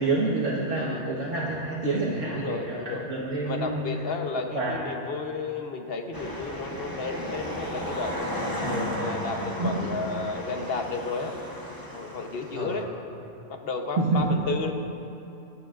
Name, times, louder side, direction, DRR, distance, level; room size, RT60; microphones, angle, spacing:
voice 1, 0.0-2.8 3.1-3.9 4.5-4.8 8.6-8.9 9.6-9.7 12.5-12.7 14.0-14.3, right 3 dB, 65° right, -6 dB, 1.8 m, -27 dB
voice 2, 0.7-1.1 2.2-3.1 3.4-8.6 9.0-11.4 11.9-12.9 13.5-14.7, left 4 dB, 50° left, 4 dB, 1.1 m, -33 dB
sound 1, 6.1-12.8, left 1 dB, 15° left, 1.2 m, -34 dB
22.5 x 11.5 x 2.6 m, 2.8 s
omnidirectional pair, 1.4 m